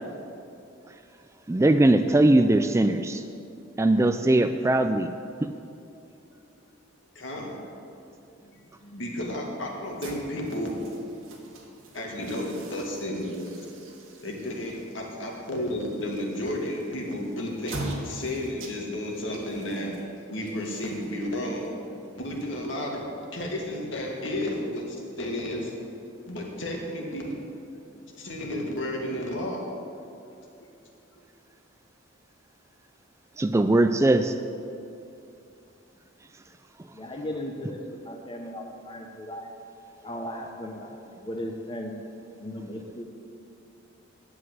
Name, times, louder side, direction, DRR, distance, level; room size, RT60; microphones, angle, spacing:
voice 1, 1.5-3.2 3.8-5.1 33.4-34.3, right 1 dB, 15° right, 8 dB, 0.3 m, -20 dB
voice 2, 6.2-6.7 7.1-7.6 8.4-11.1 11.9-13.6 14.2-21.7 22.2-23.0 23.3-25.7 26.1-27.3 27.9-29.7 31.1-31.2, left 1 dB, 70° left, -1 dB, 2.2 m, -32 dB
sound 1, 9.8-22.9, right 2 dB, 85° right, 1.8 m, -43 dB
voice 3, 36.9-39.5 40.0-41.9 42.4-43.0, left 1 dB, 25° left, 2 dB, 0.9 m, -36 dB
11.0 x 7.9 x 7.9 m, 2.6 s
head